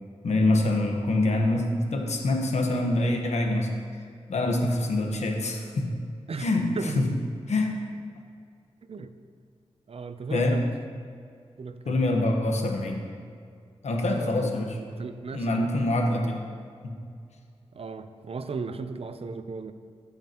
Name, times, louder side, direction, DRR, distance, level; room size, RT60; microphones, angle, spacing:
voice 1, 0.2-3.7 4.3-5.9 6.4-6.7 6.9-7.1 7.5-7.9 10.3-10.6 11.8-13.0 13.8-14.8 15.3-16.4 16.8-16.9, left 2 dB, 75° left, 2 dB, 1.2 m, -25 dB
voice 2, 6.3-7.0 8.9-9.1 9.9-10.7 11.6-12.0 14.1-15.7 17.7-19.7, right 4 dB, 60° right, 10 dB, 0.6 m, -36 dB
16.5 x 5.7 x 3.0 m, 2.2 s
cardioid pair, 45°, 12 cm